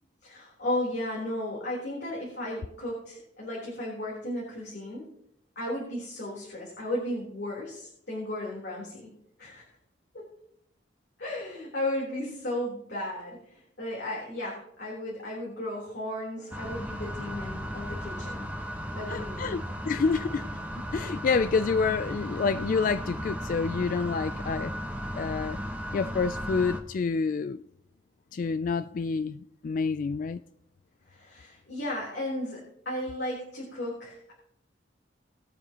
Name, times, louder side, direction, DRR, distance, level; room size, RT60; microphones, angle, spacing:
voice 1, 0.2-5.0 5.6-9.1 9.4-9.6 10.1-10.3 11.2-18.5 18.9-19.6 31.1-34.3, left 1 dB, 60° left, 3.7 m, -35 dB
sound 1, 16.5-26.8, equal, 10° right, 1.2 m, -35 dB
voice 2, 19.1-20.5 20.7-24.7 25.1-25.6 25.9-27.6 28.3-30.4, left 4 dB, 45° left, 0.3 m, -28 dB
19.5 x 9.0 x 3.0 m
head